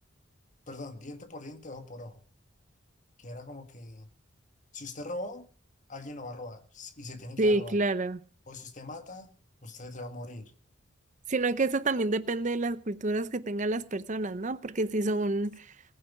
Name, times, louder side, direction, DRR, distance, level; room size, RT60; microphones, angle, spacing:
voice 1, 0.7-2.2 3.2-4.1 4.7-5.5 5.9-7.8 8.5-9.3 9.6-10.5, left 2 dB, 40° left, 1.8 m, -41 dB
voice 2, 7.4-8.2 11.3-15.7, right 2 dB, 40° right, 0.7 m, -28 dB
19.0 x 9.5 x 6.0 m
head